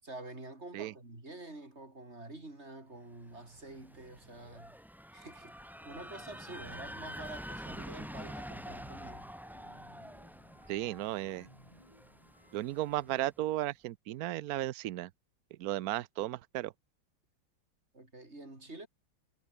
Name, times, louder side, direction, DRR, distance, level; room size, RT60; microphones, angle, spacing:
voice 1, 0.0-4.7 5.1-5.5 5.9-9.3 17.9-18.9, right 2 dB, 30° right, 5.4 m, -47 dB
sound 1, 3.3-13.1, equal, ahead, 1.4 m, -47 dB
sound 2, 5.4-13.3, left 1 dB, 15° left, 7.4 m, -62 dB
voice 2, 10.7-11.5 12.5-15.1 15.6-16.7, right 15 dB, 80° right, 0.8 m, -35 dB
omnidirectional pair, 2.2 m